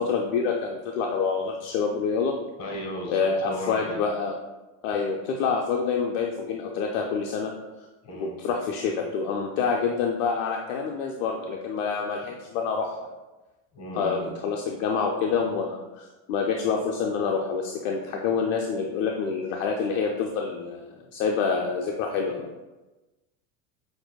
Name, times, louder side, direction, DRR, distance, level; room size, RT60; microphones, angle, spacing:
voice 1, 0.0-2.3 3.1-4.3 4.8-7.5 8.1-13.0 13.9-22.5, left 5 dB, 70° left, 1 dB, 0.6 m, -27 dB
voice 2, 2.6-4.0 8.0-8.3 12.1-12.2 13.7-14.3, equal, 40° left, -1 dB, 1.5 m, -35 dB
6.0 x 2.6 x 2.2 m, 1.1 s
supercardioid pair, 105°, 40 cm